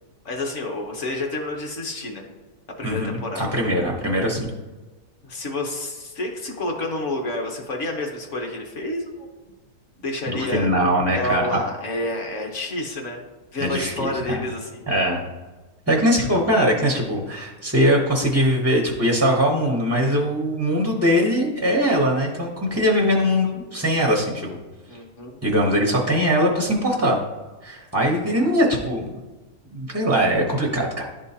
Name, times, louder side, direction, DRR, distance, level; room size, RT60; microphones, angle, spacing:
voice 1, 0.2-2.3 2.8-3.5 5.2-9.3 10.0-10.7 11.1-13.2 13.5-14.9 24.9-25.4, left 2 dB, 55° left, 2 dB, 1.3 m, -29 dB
voice 2, 2.8-4.5 10.3-11.6 13.6-14.4 14.9-15.2 15.9-24.6 25.4-27.2 27.6-29.2 29.7-31.0, equal, 20° right, -1 dB, 0.4 m, -21 dB
11.0 x 3.7 x 2.8 m, 1.2 s
omnidirectional pair, 1.6 m